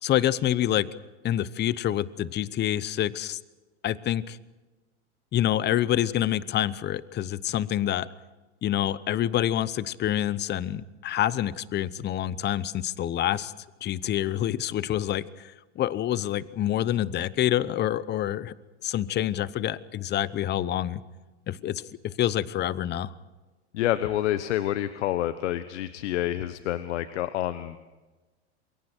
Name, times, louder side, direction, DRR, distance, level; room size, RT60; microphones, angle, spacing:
voice 1, 0.0-0.9 1.2-3.4 3.8-4.4 5.3-8.1 8.6-13.5 13.8-18.5 18.8-21.0 21.5-23.1, left 12 dB, 30° left, 18 dB, 0.9 m, -27 dB
voice 2, 23.7-27.8, left 13 dB, 75° left, 12 dB, 1.2 m, -28 dB
28.0 x 22.5 x 4.5 m, 1.2 s
hypercardioid pair, 110°, 36 cm